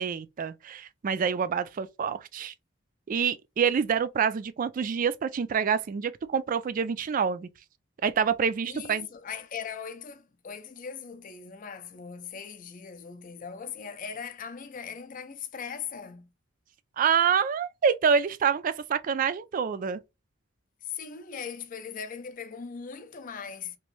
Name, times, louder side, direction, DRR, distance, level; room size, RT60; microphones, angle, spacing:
voice 1, 0.0-2.5 3.1-7.5 8.0-9.1 17.0-20.0, right 6 dB, 45° right, 0.3 m, -27 dB
voice 2, 8.6-16.3 20.8-23.8, left 6 dB, 45° left, 0.5 m, -39 dB
3.0 x 2.6 x 3.1 m
head